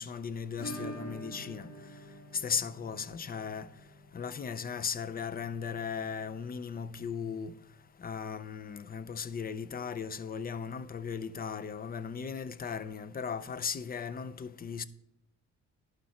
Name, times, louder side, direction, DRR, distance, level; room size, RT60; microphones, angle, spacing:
voice 1, 0.0-1.7 2.3-3.7 4.1-7.5 8.0-14.9, left 6 dB, 30° left, 0.5 m, -37 dB
Acoustic guitar / Strum, 0.6-9.2 9.4-9.5 9.8-9.9 10.3-10.4 12.4-12.5 13.7-13.8, right 1 dB, 50° left, 2.6 m, -48 dB
11.5 x 5.2 x 4.2 m
cardioid pair, 90°, 30 cm